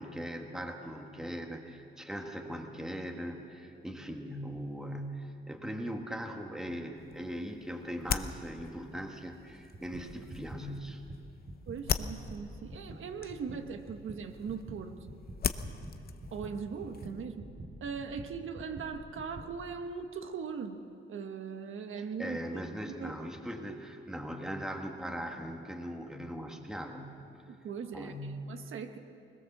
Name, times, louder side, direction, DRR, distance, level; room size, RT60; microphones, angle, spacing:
voice 1, 0.0-11.0 22.0-27.1 27.9-28.4, equal, 5° right, 3 dB, 1.4 m, -40 dB
sound 1, 6.9-17.3, left 7 dB, 45° left, 0.7 m, -40 dB
sound 2, 9.5-19.6, right 2 dB, 35° right, 1.8 m, -47 dB
voice 2, 11.7-14.9 16.3-17.5 17.8-20.8 21.1-22.6 22.9-23.1 27.5-28.1 28.5-29.0, right 6 dB, 70° right, 6 dB, 1.3 m, -40 dB
22.0 x 20.5 x 7.2 m, 2.6 s
wide cardioid pair, 165°, 21 cm